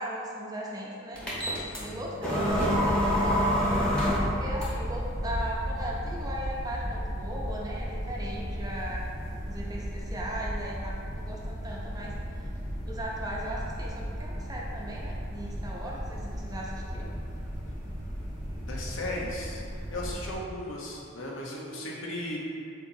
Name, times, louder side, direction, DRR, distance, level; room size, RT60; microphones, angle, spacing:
voice 1, 0.0-3.5 4.2-9.0 9.5-12.1 12.8-17.1, equal, 20° right, -3 dB, 0.5 m, -38 dB
sound 1, 1.1-20.3, equal, 5° left, 0.9 m, -34 dB
sound 2, 2.5-20.4, equal, 35° left, 0.7 m, -36 dB
voice 2, 18.6-19.6 19.9-22.4, left 1 dB, 80° left, -3 dB, 0.8 m, -36 dB
4.5 x 3.9 x 2.7 m, 2.5 s
head